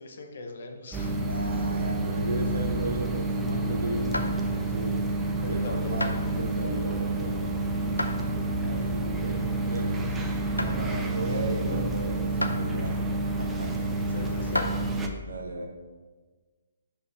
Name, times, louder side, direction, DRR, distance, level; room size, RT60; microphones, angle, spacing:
voice 1, 0.0-1.1 5.4-6.2 14.1-14.8, left 3 dB, 55° left, 4 dB, 0.9 m, -40 dB
sound 1, 0.9-15.1, right 2 dB, 10° right, 0.5 m, -29 dB
voice 2, 1.1-5.1 5.5-7.4 7.8-8.1 8.6-10.0 10.6-13.0 13.4-13.8 15.2-15.7, right 2 dB, 65° right, 2 dB, 1.1 m, -35 dB
sound 2, 4.1-4.7 5.3-5.5 6.0-6.3 6.9-7.4 8.0-8.2 8.7-8.8 9.5-9.6 10.0-10.2 10.6-10.8 11.5-11.6 12.4-12.6 13.4-13.5 14.3-14.8, left 1 dB, 90° left, 0.6 m, -32 dB
5.4 x 4.3 x 5.0 m, 1.4 s
figure-of-eight pair, 130°, 0 cm